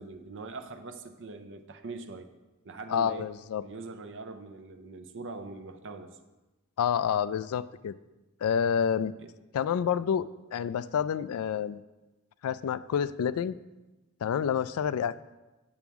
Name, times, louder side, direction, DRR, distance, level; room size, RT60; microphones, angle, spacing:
voice 1, 0.0-2.3 2.6-3.3 3.6-6.2 9.2-9.3, right 3 dB, 60° right, 8 dB, 0.6 m, -42 dB
voice 2, 2.9-3.6 6.8-7.9 8.4-9.1 9.5-11.8 12.4-13.6 14.2-15.1, left 8 dB, 75° left, 16 dB, 0.3 m, -28 dB
8.8 x 7.0 x 3.5 m, 1.1 s
head